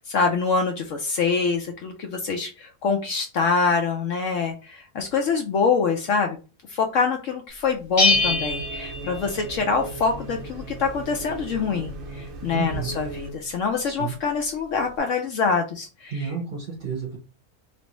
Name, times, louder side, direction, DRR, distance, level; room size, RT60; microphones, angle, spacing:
voice 1, 0.0-6.4 6.7-16.3, left 5 dB, 65° left, 4 dB, 0.8 m, -25 dB
Bell, 8.0-9.8, left 2 dB, 35° left, 0.8 m, -23 dB
sound 1, 8.1-13.3, right 4 dB, 60° right, 0.6 m, -37 dB
voice 2, 12.5-12.9 13.8-14.1 16.1-17.2, right 6 dB, 40° right, -2 dB, 0.9 m, -30 dB
3.2 x 2.5 x 2.9 m, 0.32 s
omnidirectional pair, 1.6 m